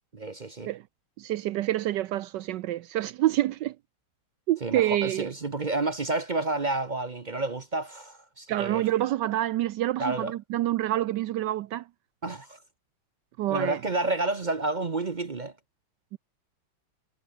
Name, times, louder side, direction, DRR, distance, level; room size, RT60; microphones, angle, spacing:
voice 1, 0.1-0.7 4.6-8.8 10.0-10.3 12.2-12.6 13.5-15.5, right 2 dB, 40° right, 0.6 m, -30 dB
voice 2, 1.2-3.8 4.5-5.3 8.5-11.9 13.4-13.8 16.1-16.2, right 14 dB, 75° right, 1.0 m, -27 dB
omnidirectional pair, 2.3 m